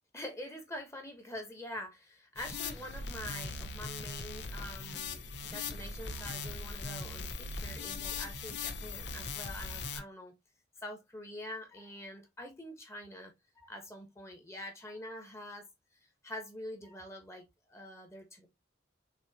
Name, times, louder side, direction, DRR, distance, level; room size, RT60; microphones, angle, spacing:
voice 1, 0.1-10.3 10.8-15.6 16.2-18.5, left 1 dB, 15° left, 1.1 m, -45 dB
sound 1, 2.4-10.0, left 4 dB, 70° left, 0.7 m, -40 dB
6.2 x 2.9 x 2.8 m
head